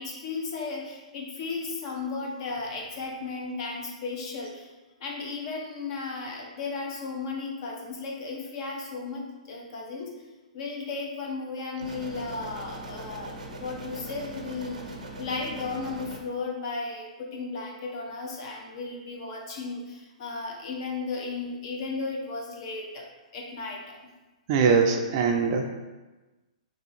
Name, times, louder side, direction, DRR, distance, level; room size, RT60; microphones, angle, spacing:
voice 1, 0.0-4.7 5.0-10.1 10.5-23.0 23.3-24.0, left 4 dB, 45° left, 0 dB, 0.8 m, -35 dB
sound 1, 11.8-16.2, right 1 dB, 90° right, 0.6 m, -40 dB
voice 2, 24.5-25.7, right 5 dB, 40° right, 3 dB, 0.4 m, -22 dB
2.8 x 2.7 x 4.1 m, 1.1 s
hypercardioid pair, 145°, 4 cm